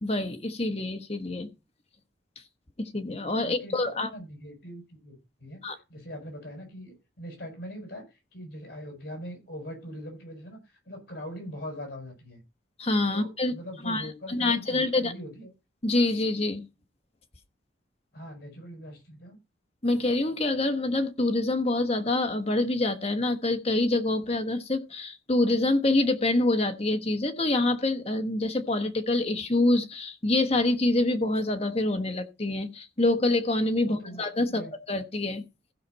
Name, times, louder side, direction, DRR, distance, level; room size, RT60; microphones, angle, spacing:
voice 1, 0.0-1.5 2.8-4.1 5.6-5.8 12.8-13.5 13.8-15.1 15.8-16.6 19.8-34.6 34.9-35.4, left 2 dB, 30° left, 1.2 m, -26 dB
voice 2, 3.4-3.7 4.1-5.6 5.9-10.6 10.8-12.4 13.1-15.5 18.1-19.4 33.8-34.7, equal, 55° left, 6.3 m, -41 dB
15.5 x 5.9 x 4.1 m
head